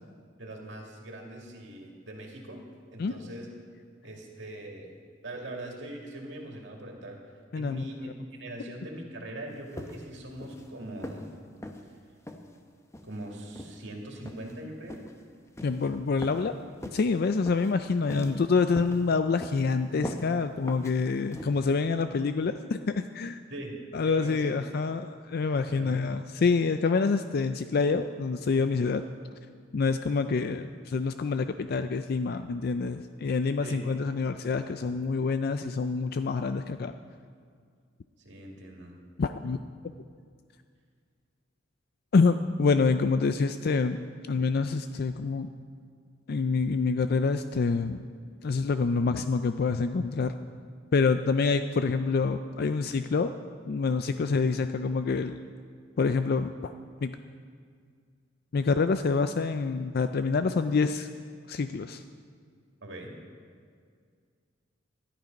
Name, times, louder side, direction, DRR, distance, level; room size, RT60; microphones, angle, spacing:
voice 1, 0.4-2.6 2.9-3.5 4.0-4.9 5.2-7.2 7.5-8.1 8.4-11.3 13.0-15.0 18.1-18.3 23.5-23.7 24.1-24.6 25.7-26.0 33.6-33.8 38.2-38.9 62.8-63.2, right 1 dB, 70° right, 0 dB, 2.3 m, -41 dB
voice 2, 7.5-7.9 15.6-16.5 16.9-23.4 23.9-29.0 29.7-36.9 39.2-39.6 42.1-44.0 44.3-45.5 46.3-48.0 48.4-50.3 50.9-53.3 53.7-55.4 56.0-56.7 57.0-57.1 58.5-61.1 61.5-62.0, left 4 dB, 55° left, 9 dB, 0.4 m, -27 dB
sound 1, 9.8-10.1 10.4-10.7 11.0-11.3 11.6-11.8 12.3-12.5 12.9-13.2 13.6-13.8 14.3-14.6 14.9-15.1 15.6-15.8 16.2-16.5 16.8-17.1 17.5-17.7 18.1-18.4 18.8-19.0 19.4-19.7 20.0-20.3 20.7-20.9 21.3-21.5, left 1 dB, 15° left, 0.8 m, -40 dB
13.0 x 11.5 x 5.3 m, 2.1 s
head